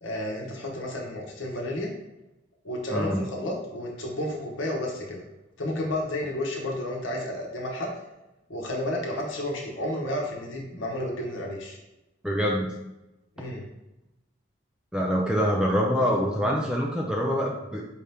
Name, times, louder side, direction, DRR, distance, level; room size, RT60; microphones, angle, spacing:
voice 1, 0.0-1.9 2.6-5.2 5.6-7.9 8.5-11.8 13.4-13.6, left 1 dB, 70° left, -1 dB, 1.0 m, -31 dB
voice 2, 2.9-3.2 12.2-12.7 14.9-17.9, equal, 5° right, -1 dB, 0.4 m, -25 dB
4.8 x 2.8 x 3.4 m, 0.96 s
head